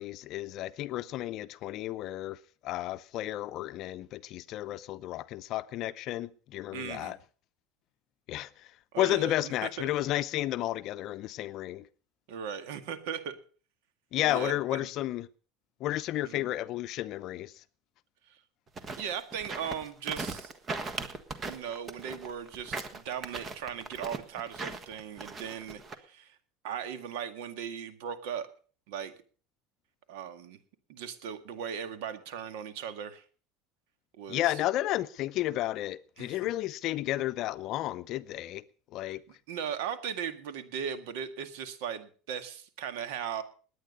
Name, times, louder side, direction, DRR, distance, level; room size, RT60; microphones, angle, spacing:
voice 1, 0.0-7.2 8.3-8.7 9.0-11.9 14.1-15.3 15.8-17.5 34.3-38.6 38.9-39.2, left 14 dB, 50° left, 0.7 m, -32 dB
voice 2, 6.7-7.1 8.9-9.7 12.3-13.4 14.2-14.9 16.2-16.5 18.3-18.4 19.0-20.5 21.5-26.4 26.6-28.5 28.9-29.1 30.1-30.6 30.9-33.2 34.2-34.6 36.2-36.4 39.3-43.4, right 8 dB, 80° right, 1.9 m, -38 dB
sound 1, 18.7-25.9, right 3 dB, 25° right, 1.5 m, -38 dB
19.5 x 9.4 x 5.4 m
supercardioid pair, 135°, 0 cm